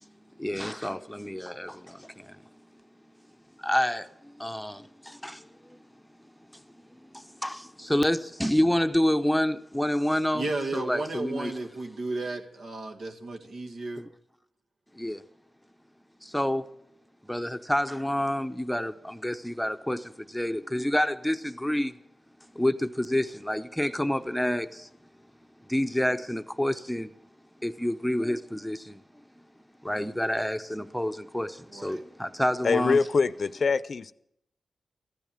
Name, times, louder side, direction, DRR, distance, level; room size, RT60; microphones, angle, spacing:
voice 1, 0.0-2.4 3.6-5.8 6.9-10.4 10.7-11.5 14.0-14.1 14.9-15.2 16.2-16.7 17.2-22.0 22.5-24.9 25.7-27.1 27.6-29.0 29.8-33.0, left 1 dB, 5° left, 0.8 m, -28 dB
voice 2, 10.3-14.0 31.7-32.0, right 2 dB, 80° right, 2.1 m, -34 dB
voice 3, 32.6-34.1, left 5 dB, 60° left, 0.6 m, -24 dB
15.0 x 10.5 x 9.0 m
cardioid pair, 80°, 0 cm